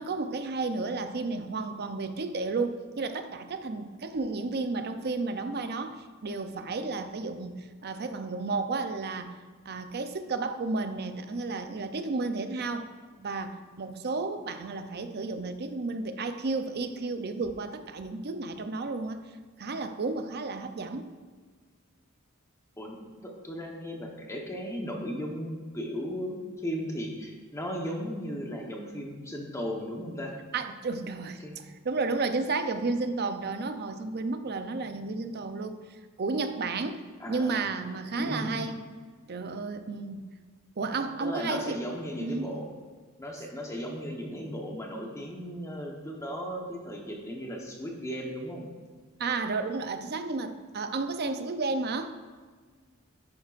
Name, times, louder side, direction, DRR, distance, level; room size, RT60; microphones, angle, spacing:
voice 1, 0.0-9.4 9.7-12.9 13.2-19.2 19.6-21.1 30.5-38.8 39.3-40.2 40.8-41.8 42.2-42.6 49.2-52.2, right 3 dB, 50° right, 8 dB, 0.6 m, -32 dB
voice 2, 23.2-30.3 31.4-31.5 37.2-37.7 38.1-38.6 41.2-42.7 43.2-48.7, equal, 15° left, 0 dB, 1.1 m, -36 dB
10.5 x 8.9 x 2.5 m, 1.5 s
head